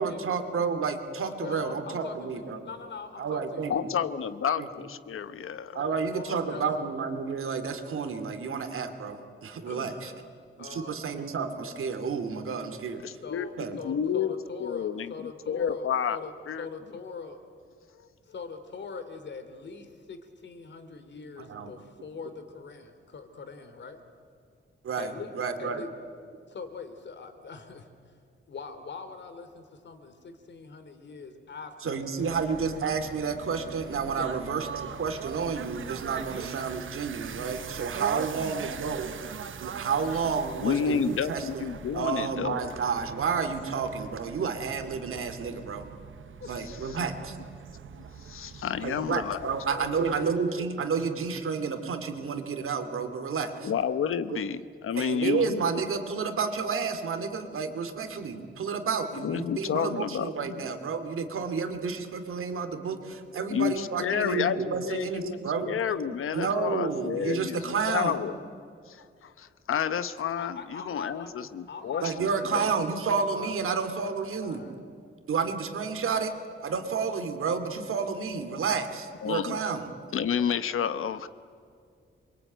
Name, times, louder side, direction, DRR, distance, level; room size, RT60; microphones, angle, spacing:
voice 1, 0.0-2.6 3.2-3.7 4.6-4.7 5.7-10.1 10.6-13.0 13.6-13.8 21.4-21.7 24.8-25.8 31.8-39.1 39.6-41.7 41.9-45.8 46.5-47.4 48.8-53.7 54.3-54.4 54.9-65.8 66.1-68.2 72.0-74.7 75.3-76.3 76.6-79.9, right 5 dB, 90° right, 7 dB, 2.6 m, -30 dB
voice 2, 1.4-4.2 5.7-6.9 9.7-10.2 10.6-11.1 13.2-16.3 16.6-17.4 18.2-24.0 25.0-25.9 26.5-27.9 28.5-32.5 34.1-34.3 36.3-36.5 38.4-39.1 46.4-46.5 49.7-50.6 70.4-73.5 74.4-74.8, left 5 dB, 60° left, 8 dB, 2.8 m, -42 dB
voice 3, 3.7-5.7 13.3-13.5 13.8-14.3 14.6-16.2 16.5-16.7 40.6-42.6 48.2-49.5 53.6-55.7 59.2-60.6 63.5-68.3 68.9-72.6 79.2-79.6 80.1-81.3, left 8 dB, 85° left, 12 dB, 1.1 m, -30 dB
sound 1, 32.2-50.4, right 7 dB, 70° right, 1.1 m, -41 dB
27.0 x 23.5 x 9.3 m, 2.3 s
wide cardioid pair, 170°, 21 cm